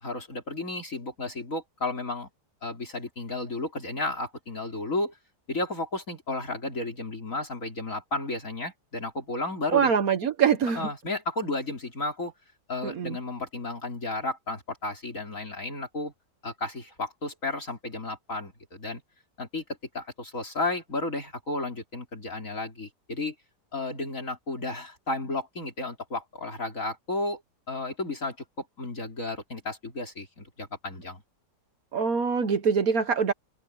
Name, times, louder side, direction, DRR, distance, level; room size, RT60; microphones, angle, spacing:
voice 1, 0.0-2.3 2.6-5.2 5.5-9.9 10.8-12.3 12.7-16.1 16.4-19.0 19.4-19.6 19.9-23.3 23.7-27.4 27.7-31.2, left 2 dB, 50° left, 4.0 m, -33 dB
voice 2, 9.7-10.9 12.8-13.2 31.9-33.3, right 6 dB, 60° right, 1.5 m, -24 dB
omnidirectional pair, 1.8 m